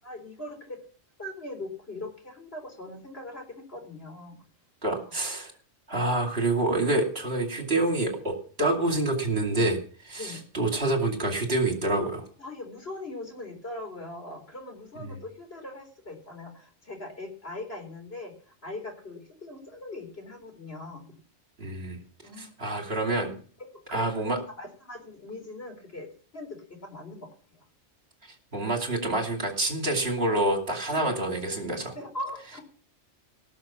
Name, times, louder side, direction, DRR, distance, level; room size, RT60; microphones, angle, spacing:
voice 1, 0.0-0.9 1.2-4.4 4.9-5.1 10.2-10.4 12.4-21.1 22.2-22.8 23.6-26.1 26.3-27.6 30.9-31.2 31.9-32.6, left 2 dB, 55° left, 3 dB, 4.4 m, -41 dB
voice 2, 4.8-5.5 5.9-9.8 10.0-12.2 21.6-22.0 22.4-23.3 23.9-24.4 28.5-32.0, right 2 dB, 60° right, 3 dB, 2.9 m, -27 dB
18.0 x 6.6 x 7.2 m, 0.42 s
omnidirectional pair, 1.2 m